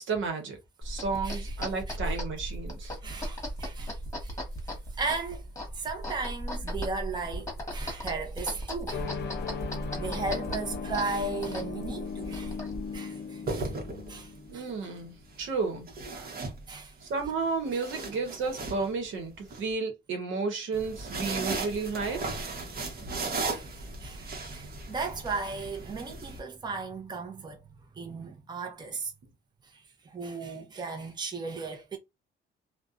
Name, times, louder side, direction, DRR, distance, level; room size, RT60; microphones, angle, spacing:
voice 1, 0.0-2.9 14.5-15.9 17.0-22.3, right 4 dB, 75° right, 1.0 m, -32 dB
sound 1, 0.8-13.0, equal, 15° left, 1.3 m, -37 dB
voice 2, 1.2-2.0 3.0-4.4 4.6-5.4 5.7-9.1 10.0-12.6 12.9-13.7 14.1-14.9 16.1-16.4 16.7-16.9 17.7-18.1 23.3-27.6 27.9-29.1 29.7-32.0, right 4 dB, 20° right, 0.7 m, -36 dB
sound 2, 8.9-15.3, left 6 dB, 60° left, 0.7 m, -38 dB
sound 3, 12.1-12.3 13.2-14.4 15.9-17.1 17.5-19.6 20.7-26.4, right 3 dB, 50° right, 1.0 m, -36 dB
2.5 x 2.2 x 2.4 m
cardioid pair, 90°, 20 cm